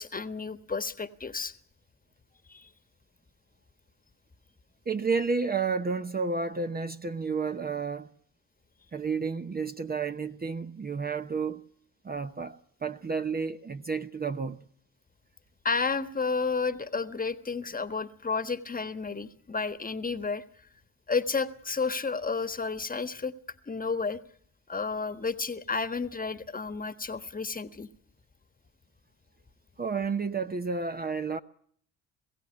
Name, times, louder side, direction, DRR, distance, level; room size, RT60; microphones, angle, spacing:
voice 1, 0.0-1.5 2.5-2.7 15.6-20.4 21.1-23.3 23.7-24.2 24.7-27.9, left 4 dB, 20° left, 1.4 m, -31 dB
voice 2, 4.9-8.1 8.9-11.7 12.0-14.6 29.8-31.4, right 5 dB, 25° right, 0.9 m, -31 dB
22.0 x 16.0 x 9.5 m
hypercardioid pair, 60°, 41 cm